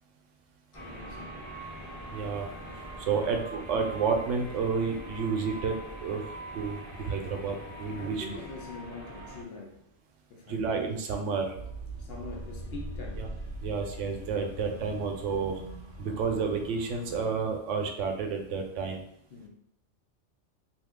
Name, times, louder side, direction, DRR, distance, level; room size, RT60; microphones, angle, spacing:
sound 1, 0.7-9.4, right 1 dB, 15° left, 0.9 m, -43 dB
voice 1, 0.8-1.4 3.1-3.3 8.0-9.8 10.3-10.8 12.0-13.3 19.3-19.5, left 3 dB, 60° left, 0 dB, 0.8 m, -43 dB
voice 2, 2.1-2.5 3.1-5.8 6.0-6.2 6.5-8.2 10.5-11.5 13.2-13.3 13.6-15.5 16.0-19.0, right 5 dB, 85° right, 3 dB, 0.9 m, -30 dB
sound 2, 11.5-17.3, right 1 dB, 55° right, 0.6 m, -41 dB
2.6 x 2.4 x 3.5 m, 0.75 s
omnidirectional pair, 1.2 m